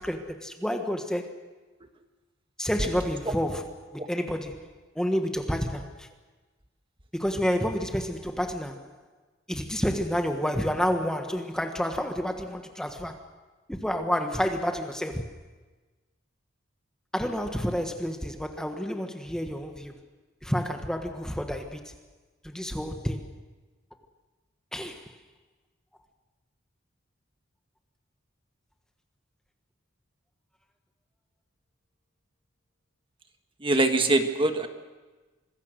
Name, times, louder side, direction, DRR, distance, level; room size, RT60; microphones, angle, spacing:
voice 1, 0.0-1.3 2.6-6.1 7.1-8.9 9.5-13.2 13.7-15.3 17.1-19.9 20.4-21.9 22.4-23.3 24.7-25.0, equal, 5° left, 1.4 m, -29 dB
voice 2, 33.6-34.7, right 2 dB, 25° right, 1.5 m, -23 dB
26.0 x 21.5 x 6.6 m
head